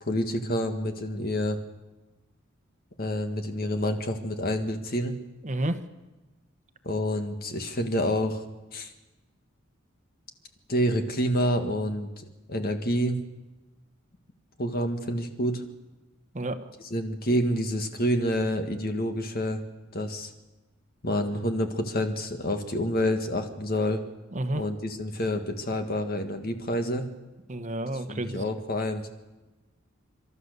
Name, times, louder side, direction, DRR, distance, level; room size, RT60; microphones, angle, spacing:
voice 1, 0.0-1.6 3.0-5.2 6.8-8.4 8.7-8.9 10.7-13.2 14.6-15.6 16.9-19.6 19.9-20.3 21.0-24.0 24.6-27.1 28.1-29.1, equal, 50° left, 6 dB, 1.8 m, -28 dB
voice 2, 5.4-5.8 16.3-16.7 24.3-24.6 27.5-28.4, right 1 dB, 35° right, 9 dB, 1.1 m, -30 dB
30.0 x 13.0 x 6.8 m, 1.1 s
head